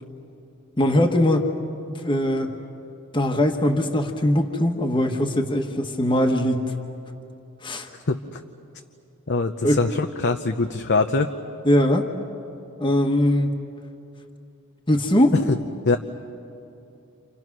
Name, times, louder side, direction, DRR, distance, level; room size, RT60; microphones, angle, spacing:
voice 1, 0.8-1.5 2.0-2.5 3.1-6.7 7.6-7.9 9.6-9.8 11.6-12.1 12.8-13.5 14.9-15.3, left 1 dB, 20° left, 2 dB, 1.5 m, -21 dB
voice 2, 8.1-8.4 9.3-11.3 15.5-15.6 15.9-16.0, left 3 dB, 55° left, 5 dB, 0.8 m, -23 dB
30.0 x 28.5 x 6.1 m, 2.7 s
head